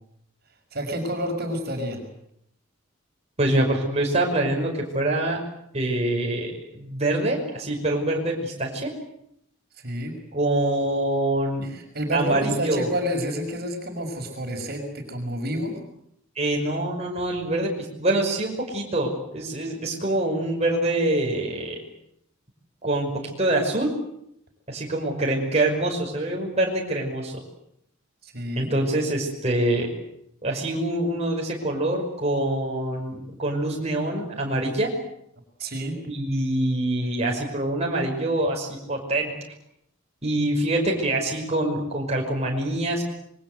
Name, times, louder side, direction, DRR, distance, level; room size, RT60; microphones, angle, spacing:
voice 1, 0.7-2.0 9.7-10.2 11.6-15.8 28.2-28.7 35.6-36.0, equal, 50° right, 4 dB, 5.9 m, -29 dB
voice 2, 3.4-5.4 5.7-8.9 10.3-11.7 12.1-12.9 16.4-17.7 18.0-21.8 22.8-23.9 24.7-27.3 28.6-29.9 30.4-34.9 36.1-39.3 40.2-43.0, right 1 dB, 30° right, -1 dB, 5.6 m, -25 dB
27.0 x 23.0 x 7.9 m, 0.75 s
head